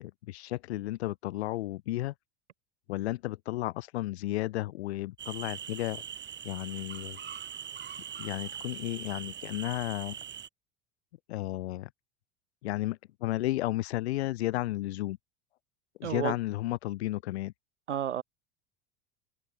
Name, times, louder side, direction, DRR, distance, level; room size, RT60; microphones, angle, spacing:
voice 1, 0.0-2.1 2.9-6.0 6.4-7.2 8.2-10.2 11.3-11.9 12.6-15.2 16.0-17.5, left 16 dB, 65° left, 0.9 m, -33 dB
sound 1, 5.2-10.5, right 8 dB, 30° right, 5.5 m, -42 dB
voice 2, 16.0-16.3 17.9-18.2, right 9 dB, 75° right, 1.9 m, -31 dB
figure-of-eight pair, 75°, 36 cm